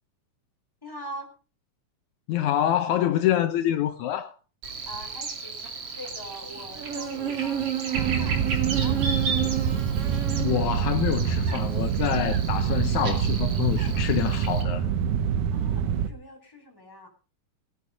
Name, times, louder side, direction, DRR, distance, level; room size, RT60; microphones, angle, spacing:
voice 1, 0.8-1.3 4.8-9.0 15.5-17.1, equal, 5° left, 4.4 m, -42 dB
voice 2, 2.3-4.3 10.4-14.9, left 11 dB, 75° left, 2.2 m, -26 dB
Buzz, 4.6-14.6, right 7 dB, 50° right, 3.2 m, -32 dB
sound 1, 7.9-16.1, right 8 dB, 80° right, 2.5 m, -26 dB
18.5 x 10.0 x 5.3 m
omnidirectional pair, 3.6 m